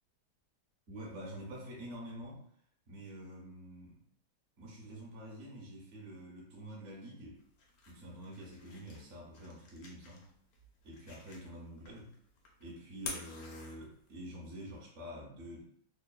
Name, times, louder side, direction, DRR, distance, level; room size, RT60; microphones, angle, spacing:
voice 1, 0.9-2.4 2.9-4.0 4.6-7.4 7.9-10.3 10.8-12.1 12.6-15.6, equal, 55° right, -4 dB, 0.8 m, -47 dB
sound 1, 7.4-14.3, left 3 dB, 75° left, 0.8 m, -50 dB
3.2 x 2.1 x 2.2 m, 0.64 s
omnidirectional pair, 2.2 m